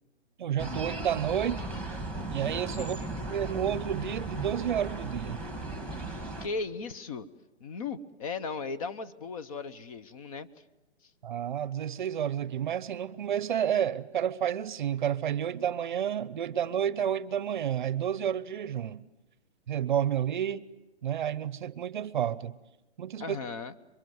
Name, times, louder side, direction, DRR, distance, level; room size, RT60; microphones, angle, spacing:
voice 1, 0.4-1.7 2.3-3.0 3.3-5.4 11.2-19.0 19.7-20.7 21.0-22.5 23.0-23.4, right 9 dB, 45° right, 0.8 m, -30 dB
sound 1, 0.6-6.5, right 2 dB, 5° left, 1.7 m, -36 dB
voice 2, 2.8-3.3 6.4-7.3 7.6-10.5 11.0-11.1 23.2-23.8, left 4 dB, 30° left, 1.0 m, -37 dB
27.5 x 24.0 x 8.0 m
hypercardioid pair, 155°, 35 cm